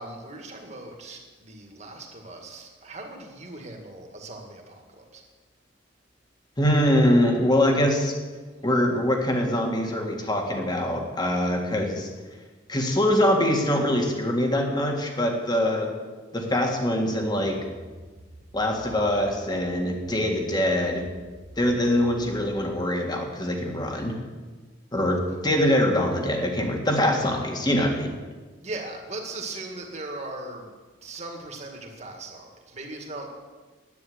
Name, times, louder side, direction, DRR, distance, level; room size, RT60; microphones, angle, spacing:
voice 1, 0.0-5.2 28.6-30.7 31.0-33.4, right 2 dB, 35° right, 2 dB, 2.1 m, -39 dB
voice 2, 6.6-8.1 8.6-12.1 12.7-15.9 16.3-17.6 18.5-21.1 21.6-24.2 24.9-28.1, left 1 dB, 20° left, 2 dB, 1.8 m, -23 dB
sound 1, 17.3-22.5, right 1 dB, 70° right, 1.5 m, -47 dB
11.0 x 9.3 x 8.1 m, 1.3 s
head